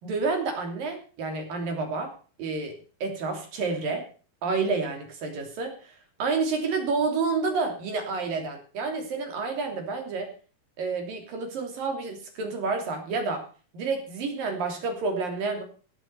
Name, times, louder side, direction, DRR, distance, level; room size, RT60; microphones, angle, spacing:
voice 1, 0.0-2.1 2.4-2.8 3.0-4.1 4.4-5.9 6.2-10.3 10.8-13.4 13.7-15.6, right 4 dB, 65° right, 4 dB, 4.8 m, -29 dB
17.0 x 9.0 x 6.9 m, 0.39 s
omnidirectional pair, 4.3 m